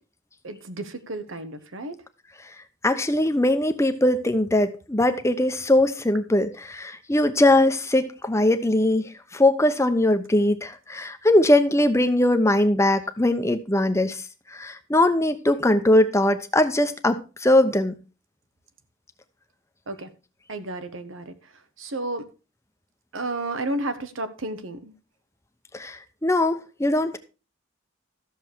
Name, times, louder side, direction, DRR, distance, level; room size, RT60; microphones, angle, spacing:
voice 1, 0.4-2.0 19.9-20.1 20.5-22.3 23.1-24.9, right 2 dB, 75° right, 1.3 m, -32 dB
voice 2, 2.8-14.2 14.5-17.9 25.7-27.2, left 1 dB, 15° left, 0.9 m, -21 dB
13.0 x 7.0 x 4.5 m
head